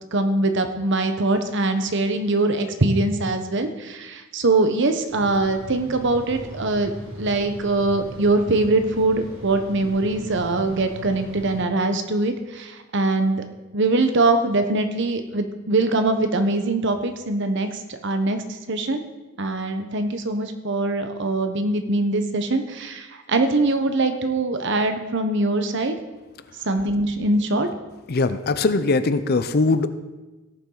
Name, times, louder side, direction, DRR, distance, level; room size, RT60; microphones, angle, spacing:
voice 1, 0.1-6.9 7.2-13.4 13.7-18.4 18.7-19.0 19.4-25.9 26.7-27.7, right 2 dB, 60° right, 7 dB, 1.0 m, -22 dB
sound 1, 5.1-11.6, right 1 dB, 80° right, 2.8 m, -39 dB
voice 2, 28.1-29.9, left 3 dB, 50° left, 12 dB, 0.6 m, -21 dB
17.5 x 7.2 x 3.9 m, 1.1 s
head